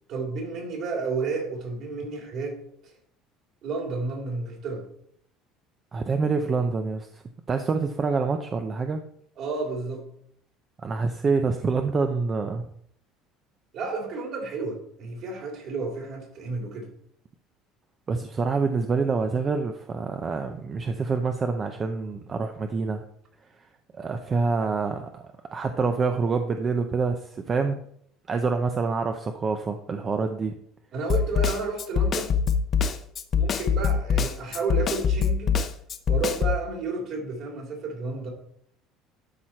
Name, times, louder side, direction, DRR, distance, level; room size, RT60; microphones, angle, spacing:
voice 1, 0.1-2.9 3.6-4.8 9.4-10.0 13.7-16.9 30.9-32.4 33.3-35.6 36.1-38.3, right 4 dB, 50° right, 1 dB, 3.2 m, -31 dB
voice 2, 5.9-7.1 7.5-9.0 10.8-12.6 18.1-23.0 24.0-25.2 25.5-27.8 28.3-30.5, right 4 dB, 25° right, 6 dB, 0.6 m, -26 dB
Snare drum, 31.1-36.6, left 6 dB, 35° left, 0.7 m, -23 dB
12.0 x 4.3 x 4.4 m, 0.66 s
cardioid pair, 140°, 0 cm